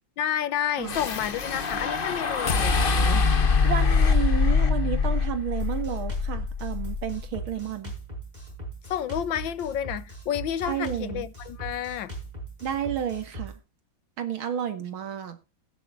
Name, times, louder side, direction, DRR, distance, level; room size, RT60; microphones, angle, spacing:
voice 1, 0.2-3.3 8.9-12.1, left 10 dB, 75° left, 1.5 m, -30 dB
sound 1, 0.9-7.2, left 5 dB, 35° left, 0.9 m, -24 dB
voice 2, 3.6-7.9 10.6-11.3 12.6-13.6 14.2-15.4, right 9 dB, 85° right, 2.5 m, -31 dB
Drum kit, 5.6-13.5, right 2 dB, 20° right, 6.1 m, -39 dB
20.0 x 9.8 x 2.5 m
omnidirectional pair, 2.2 m